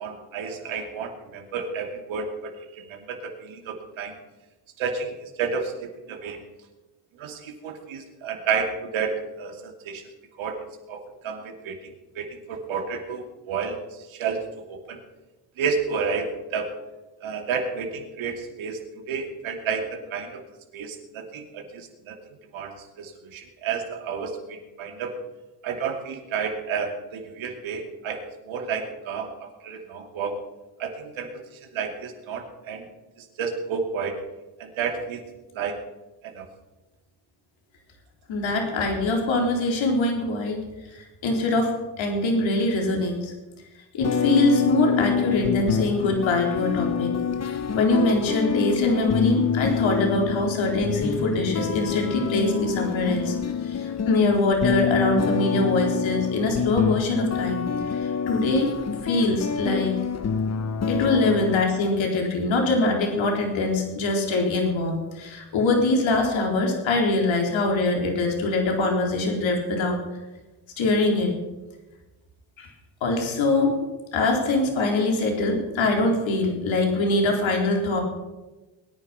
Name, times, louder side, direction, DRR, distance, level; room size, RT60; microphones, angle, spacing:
voice 1, 0.0-4.2 4.8-6.4 7.1-10.0 10.4-10.6 10.9-15.0 15.6-16.7 17.2-20.4 20.7-22.1 22.5-25.1 25.6-30.4 30.8-32.9 33.2-34.2 34.6-35.2 35.5-35.8 36.2-36.5, right 5 dB, 70° right, 3 dB, 2.7 m, -31 dB
voice 2, 38.3-40.6 40.9-41.7 42.0-43.3 43.9-47.1 47.4-53.3 53.6-57.6 57.9-58.7 59.0-60.0 60.9-70.0 70.8-71.3 72.6-72.7 73.0-73.8 74.1-78.0, left 2 dB, 65° left, 1 dB, 4.0 m, -23 dB
sound 1, 44.0-61.7, left 6 dB, 30° left, 1.0 m, -26 dB
21.5 x 10.0 x 5.8 m, 1.1 s
supercardioid pair, 55°, 49 cm